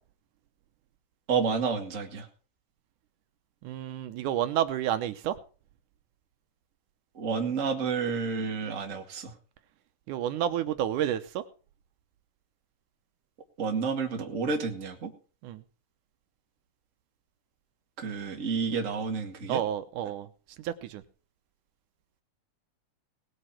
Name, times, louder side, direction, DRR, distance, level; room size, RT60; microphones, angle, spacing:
voice 1, 1.3-2.3 7.1-9.3 13.6-15.1 18.0-19.6, right 5 dB, 30° right, 3 dB, 2.0 m, -30 dB
voice 2, 3.6-5.3 10.1-11.4 15.4-15.6 19.5-20.3 20.6-21.0, right 11 dB, 80° right, 9 dB, 2.3 m, -30 dB
19.0 x 8.1 x 5.8 m, 0.38 s
omnidirectional pair, 3.6 m